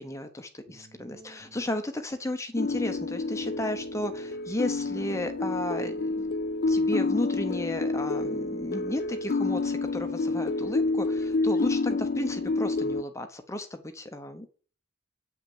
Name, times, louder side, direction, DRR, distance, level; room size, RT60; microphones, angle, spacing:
voice 1, 0.0-6.3 6.7-14.5, left 1 dB, 15° left, 7 dB, 0.9 m, -34 dB
sound 1, 0.7-1.6 2.6-3.7 4.7-5.6 6.6-7.6, right 1 dB, 55° right, 3.0 m, -55 dB
sound 2, 2.6-13.0, left 3 dB, 55° left, 0.4 m, -29 dB
8.8 x 5.8 x 7.2 m, 0.39 s
head